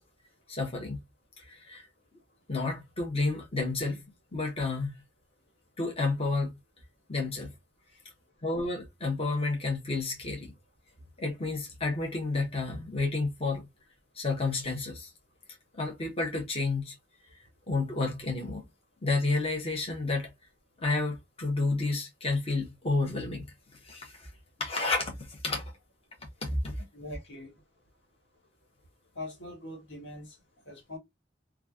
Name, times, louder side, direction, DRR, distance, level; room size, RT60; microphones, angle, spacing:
voice 1, 0.5-1.0 1.4-1.9 2.5-4.0 4.3-4.9 5.8-6.5 7.1-7.5 8.4-10.5 11.2-13.7 14.1-15.1 15.7-16.9 17.7-18.6 19.0-20.3 20.8-23.5 23.8-24.3 24.6-25.7 26.4-26.7, left 3 dB, 35° left, 1.0 m, -30 dB
voice 2, 26.9-27.5 29.1-30.4 30.7-31.0, left 1 dB, 85° left, 1.4 m, -42 dB
3.1 x 2.4 x 2.4 m
head